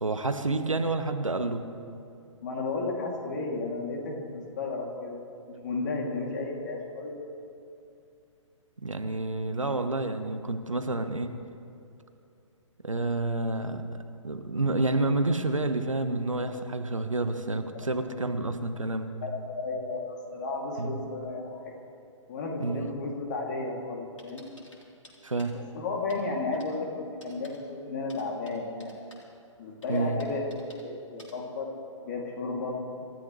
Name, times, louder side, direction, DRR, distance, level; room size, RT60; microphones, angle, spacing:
voice 1, 0.0-1.6 8.8-11.3 12.8-19.1 20.8-21.0 22.6-23.0 25.2-25.6 29.9-30.2, right 2 dB, 80° right, 8 dB, 1.3 m, -29 dB
voice 2, 2.4-5.2 5.5-7.1 17.7-17.8 19.2-21.7 22.3-24.5 25.5-28.9 29.6-31.7 32.0-32.8, left 3 dB, 35° left, 0 dB, 2.7 m, -33 dB
sound 1, 24.2-25.5 26.1-26.2 26.6-26.8 27.2-27.6 28.1-29.2 29.8-30.8 31.2-31.3, left 1 dB, 75° left, 3.7 m, -53 dB
27.0 x 14.5 x 3.3 m, 2.5 s
figure-of-eight pair, 130°, 17 cm